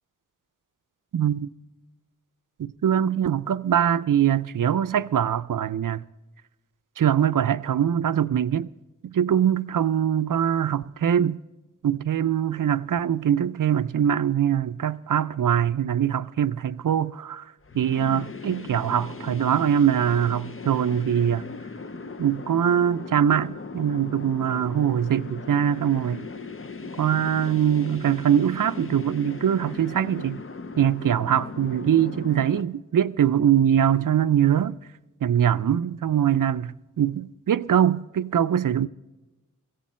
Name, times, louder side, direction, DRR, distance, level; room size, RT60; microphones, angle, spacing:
voice 1, 1.1-1.5 2.6-6.0 7.0-8.7 9.0-11.4 11.8-17.5 17.7-21.4 22.2-26.3 27.0-30.4 30.8-34.8 35.2-38.9, right 9 dB, 80° right, 0.5 m, -23 dB
sound 1, 17.6-32.6, left 4 dB, 40° left, 0.7 m, -38 dB
16.5 x 15.5 x 4.3 m
wide cardioid pair, 65°, 32 cm